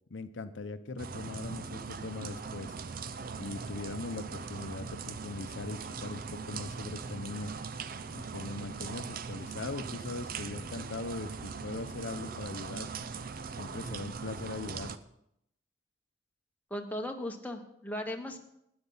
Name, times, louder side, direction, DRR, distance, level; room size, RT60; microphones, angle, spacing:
voice 1, 0.1-2.8 3.4-7.5 8.1-12.9 13.6-14.9, left 3 dB, 85° left, 10 dB, 0.8 m, -40 dB
sound 1, 1.0-15.0, right 5 dB, 50° right, 0.6 m, -40 dB
voice 2, 16.7-18.4, left 1 dB, 10° left, 3 dB, 1.1 m, -37 dB
12.5 x 9.7 x 5.5 m, 0.77 s
head